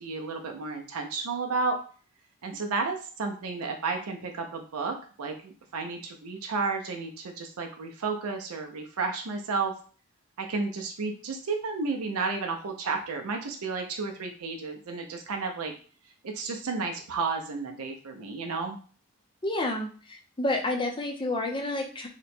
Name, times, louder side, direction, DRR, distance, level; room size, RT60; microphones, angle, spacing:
voice 1, 0.0-1.8 2.4-9.7 10.4-15.7 16.2-18.8, right 4 dB, 75° right, 3 dB, 0.5 m, -32 dB
voice 2, 19.4-22.1, left 2 dB, 20° left, 3 dB, 0.5 m, -30 dB
2.9 x 2.1 x 4.1 m, 0.41 s
head